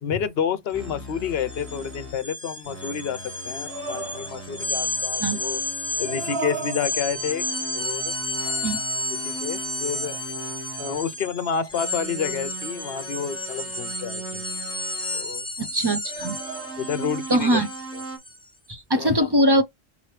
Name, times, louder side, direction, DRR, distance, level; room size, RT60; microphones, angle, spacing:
voice 1, 0.0-5.6 6.0-7.5 7.7-8.1 9.2-10.2 10.8-14.4 15.1-15.5 16.8-17.7 17.9-18.0 18.9-19.3, left 7 dB, 65° left, 0.9 m, -29 dB
sound 1, 0.7-0.9 1.2-18.4, left 2 dB, 5° left, 0.8 m, -32 dB
sound 2, 0.7-2.2 2.6-6.4 7.1-11.2 11.7-15.3 16.2-18.2, right 2 dB, 10° right, 1.7 m, -39 dB
sound 3, 3.6-4.7 5.9-7.5 8.4-9.4 10.0-10.2 16.0-17.2, right 4 dB, 60° right, 1.5 m, -36 dB
voice 2, 15.6-16.4 17.3-17.7 18.7-19.6, right 1 dB, 30° right, 0.5 m, -21 dB
5.3 x 3.0 x 3.2 m
omnidirectional pair, 1.1 m